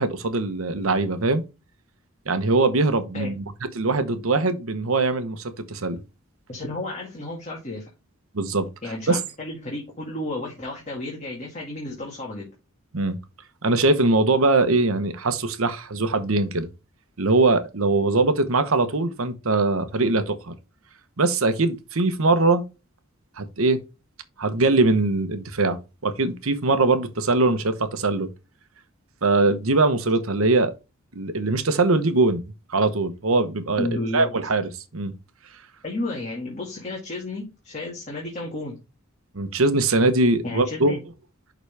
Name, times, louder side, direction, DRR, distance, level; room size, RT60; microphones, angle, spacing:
voice 1, 0.0-1.4 2.3-3.4 3.7-6.0 8.3-8.7 9.1-9.2 12.9-13.2 13.6-16.7 17.2-20.5 21.2-22.6 23.4-23.8 24.4-28.3 29.2-30.7 31.1-32.4 32.7-33.9 34.1-35.1 39.3-40.9, right 3 dB, 75° right, 1.0 m, -21 dB
voice 2, 6.5-7.9 8.8-12.5 33.8-34.3 35.8-38.8 40.4-41.0, left 2 dB, 30° left, 2.1 m, -32 dB
11.0 x 4.0 x 3.4 m
head